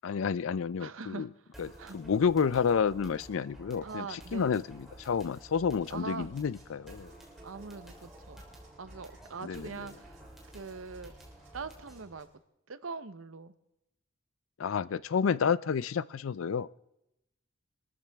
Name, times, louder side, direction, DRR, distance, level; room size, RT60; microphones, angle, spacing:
voice 1, 0.0-1.3 1.6-1.7 1.9-7.1 9.4-9.7 14.6-16.7, left 6 dB, 85° left, 19 dB, 0.4 m, -30 dB
voice 2, 0.8-1.3 1.8-2.0 3.8-4.5 5.9-6.3 7.4-8.4 8.8-10.2 10.5-11.1 11.5-12.3 12.7-13.5, right 4 dB, 90° right, 13 dB, 0.9 m, -42 dB
sound 1, 1.5-12.2, right 1 dB, ahead, 3.4 m, -51 dB
sound 2, 5.8-12.4, right 4 dB, 35° right, 6.6 m, -68 dB
24.0 x 13.5 x 3.5 m, 0.85 s
head